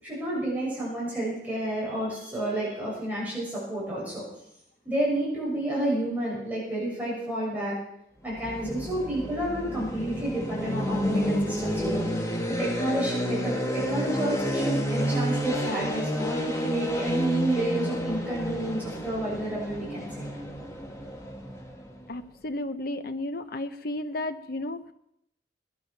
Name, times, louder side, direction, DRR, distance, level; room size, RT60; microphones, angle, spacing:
voice 1, 0.0-4.2 4.8-7.8 8.2-12.0 12.5-20.3, right 1 dB, 10° right, -7 dB, 6.5 m, -30 dB
sound 1, 8.3-22.2, equal, 15° left, 1.9 m, -30 dB
voice 2, 22.1-24.9, left 1 dB, 55° left, 9 dB, 1.0 m, -33 dB
19.5 x 12.0 x 5.8 m, 0.77 s
head